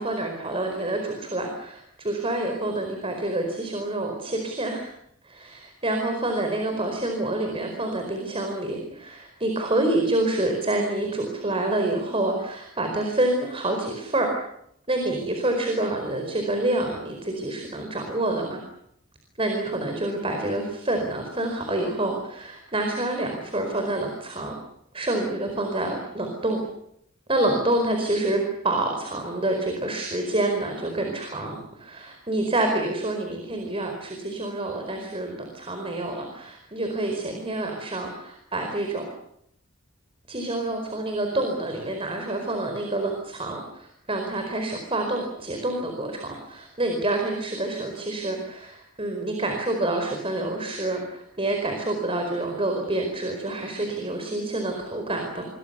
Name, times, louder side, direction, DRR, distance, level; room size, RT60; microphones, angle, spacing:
voice 1, 0.0-4.9 5.2-14.3 14.9-18.6 19.4-24.5 24.9-26.6 27.3-39.1 40.3-55.5, right 2 dB, 25° right, 3 dB, 4.8 m, -27 dB
29.5 x 23.5 x 6.9 m, 0.73 s
head